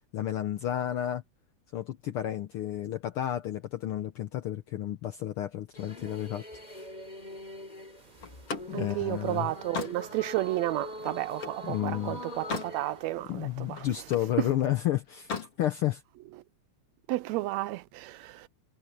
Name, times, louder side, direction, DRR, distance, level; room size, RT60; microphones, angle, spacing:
voice 1, 0.1-1.2 1.7-6.4 8.7-9.5 11.6-12.2 13.3-16.0, left 12 dB, 75° left, 1.3 m, -31 dB
sound 1, 5.7-13.1, left 1 dB, 15° left, 5.2 m, -43 dB
Slam, 8.2-11.7 12.1-12.8 13.2-14.3 15.1-15.6, left 5 dB, 55° left, 4.0 m, -38 dB
voice 2, 8.7-13.9 17.1-18.5, right 16 dB, 80° right, 1.7 m, -32 dB
omnidirectional pair, 3.4 m